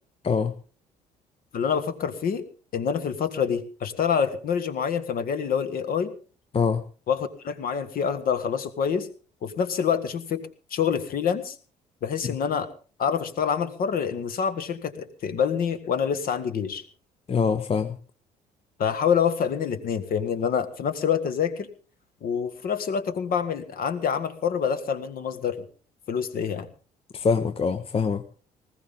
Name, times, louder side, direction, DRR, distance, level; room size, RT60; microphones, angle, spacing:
voice 1, 1.5-2.4 2.7-6.1 7.1-9.1 9.4-10.4 10.7-11.5 12.0-12.7 13.0-16.8 18.8-21.7 22.2-25.6 26.1-26.7, left 7 dB, 45° left, 11 dB, 1.6 m, -26 dB
voice 2, 17.3-18.0 27.1-28.2, left 5 dB, 30° left, 10 dB, 0.9 m, -24 dB
19.5 x 15.5 x 3.7 m, 0.38 s
figure-of-eight pair, 50°, 21 cm